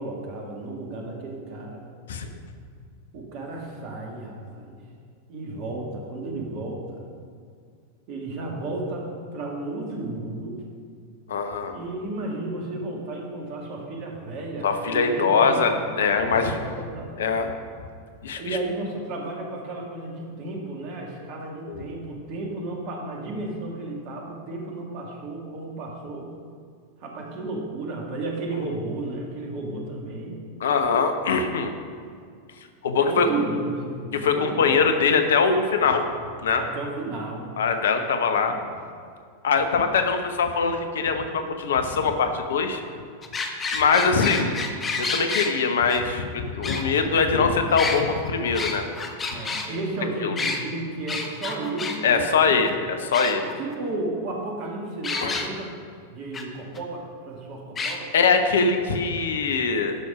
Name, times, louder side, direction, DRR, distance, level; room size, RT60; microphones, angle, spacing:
voice 1, 0.0-1.8 3.1-4.8 5.3-7.1 8.1-10.6 11.7-15.9 16.3-17.1 18.3-26.3 27.0-30.4 33.0-34.7 36.6-37.6 38.0-38.7 49.3-52.6 53.4-55.7 56.1-58.1, right 2 dB, 45° right, 0 dB, 2.1 m, -33 dB
voice 2, 11.3-11.8 14.6-16.6 17.2-17.5 18.2-18.4 21.7-21.9 30.6-31.7 32.8-33.3 34.1-36.0 36.4-36.6 37.6-38.5 39.4-42.8 43.7-44.6 45.0-48.8 50.2-50.3 52.0-53.4 55.2-55.4 58.1-60.0, left 5 dB, 60° left, 7 dB, 0.9 m, -22 dB
sound 1, 43.2-45.5 45.9-46.0 46.6-47.3 47.7-49.7 50.4-50.6 51.1-52.0 52.3-52.4 52.6-52.7 53.1-53.7 55.0-55.5 56.3-56.4 56.8-56.9 57.8-58.0, left 4 dB, 20° left, 1.1 m, -29 dB
12.0 x 6.2 x 4.9 m, 2.2 s
figure-of-eight pair, 90°, 0 cm